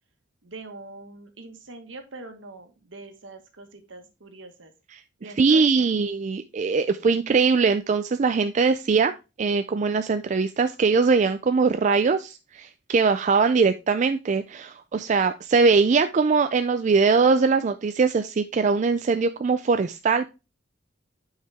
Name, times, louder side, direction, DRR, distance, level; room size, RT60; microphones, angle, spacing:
voice 1, 0.4-4.7 5.2-5.8, right 2 dB, 70° right, 6 dB, 1.5 m, -43 dB
voice 2, 5.4-9.1 9.4-20.3, right 4 dB, 40° right, 9 dB, 0.4 m, -21 dB
8.3 x 4.8 x 3.4 m, 0.28 s
head